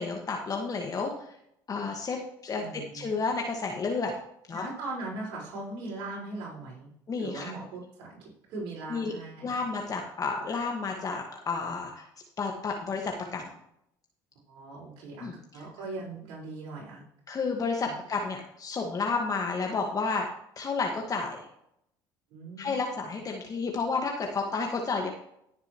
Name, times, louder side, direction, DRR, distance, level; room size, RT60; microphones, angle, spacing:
voice 1, 0.0-1.3 1.7-2.2 2.4-4.1 4.5-4.7 7.1-7.5 8.9-9.1 9.4-12.0 12.4-13.4 15.2-15.3 17.3-20.3 20.6-21.4 22.6-25.1, left 4 dB, 35° left, 1 dB, 1.6 m, -31 dB
voice 2, 2.6-3.1 4.5-6.9 7.2-9.7 10.0-10.1 14.5-17.0 17.8-17.9 22.3-22.8, right 2 dB, 70° right, -6 dB, 4.7 m, -40 dB
17.0 x 6.9 x 3.0 m, 0.75 s
hypercardioid pair, 65°, 10 cm